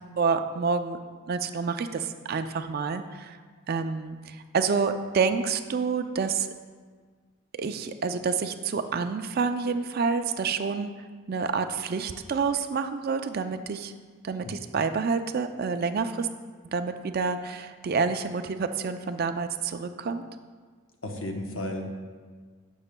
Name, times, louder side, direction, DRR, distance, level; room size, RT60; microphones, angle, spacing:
voice 1, 0.2-1.0 1.3-3.4 3.7-6.5 7.5-10.9 11.3-13.9 14.2-16.3 16.7-20.2, right 5 dB, 45° right, 9 dB, 0.3 m, -28 dB
voice 2, 21.0-21.9, left 1 dB, 60° left, 2 dB, 0.9 m, -33 dB
12.0 x 7.0 x 2.2 m, 1.5 s
head